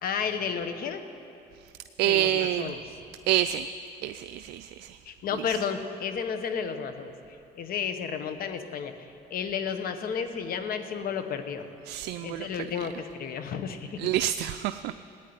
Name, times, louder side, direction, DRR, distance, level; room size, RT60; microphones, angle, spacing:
voice 1, 0.0-1.0 2.1-2.8 5.1-7.1 7.6-11.7 12.2-14.1, left 6 dB, 60° left, 8 dB, 1.2 m, -32 dB
voice 2, 2.0-2.7 3.3-3.7 4.0-5.0 5.3-5.6 11.9-12.9 14.0-14.9, right 12 dB, 80° right, 11 dB, 0.4 m, -28 dB
15.0 x 9.3 x 9.5 m, 2.6 s
cardioid pair, 110°, 17 cm